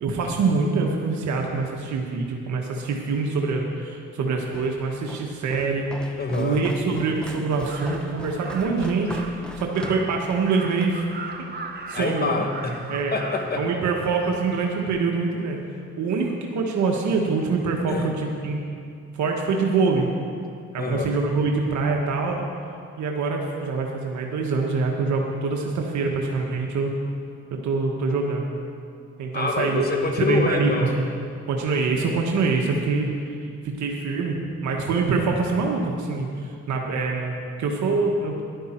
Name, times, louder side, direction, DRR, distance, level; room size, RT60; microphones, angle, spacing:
voice 1, 0.0-9.2 9.6-11.0 11.4-11.5 11.9-12.4 12.9-13.1 13.6-15.6 16.0-18.6 19.1-20.1 20.7-22.5 23.0-26.9 27.5-28.5 29.2-29.8 30.2-30.9 31.5-33.1 33.6-34.4 34.6-38.4, right 4 dB, 70° right, 1 dB, 1.3 m, -25 dB
Walk footsteps, 4.5-11.0, equal, 5° left, 0.8 m, -40 dB
voice 2, 6.2-6.6 11.9-12.8 13.1-13.6 17.9-18.1 20.8-21.1 29.3-30.9, left 3 dB, 30° left, 3 dB, 1.6 m, -26 dB
Crow, 7.5-14.9, right 4 dB, 35° right, 1.1 m, -39 dB
13.0 x 11.0 x 4.4 m, 2.4 s
cardioid pair, 90°, 30 cm